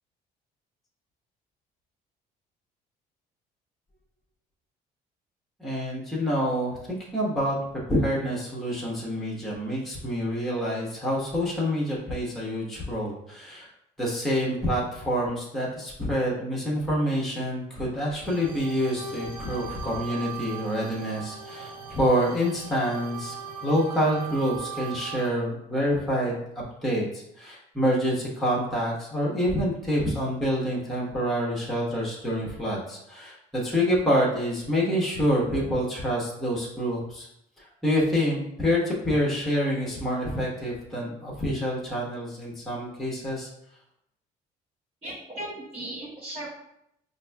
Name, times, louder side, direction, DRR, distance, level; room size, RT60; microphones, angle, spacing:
voice 1, 5.6-7.6 7.9-13.7 14.0-23.4 23.6-37.3 37.6-43.5, equal, ahead, -5 dB, 1.0 m, -27 dB
sound 1, 18.2-25.3, right 6 dB, 55° right, 0.8 m, -39 dB
voice 2, 45.0-46.5, right 1 dB, 35° right, -9 dB, 1.2 m, -37 dB
5.1 x 2.6 x 2.2 m, 0.78 s
cardioid pair, 110°, 17 cm